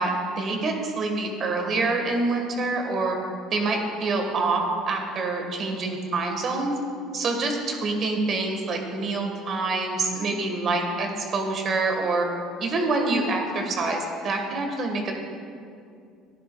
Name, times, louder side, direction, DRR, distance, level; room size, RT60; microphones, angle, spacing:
voice 1, 0.0-3.2 3.5-6.7 7.1-12.3 12.6-15.1, right 3 dB, 45° right, 2 dB, 1.4 m, -26 dB
11.5 x 10.0 x 2.2 m, 2.4 s
supercardioid pair, 105°, 0 cm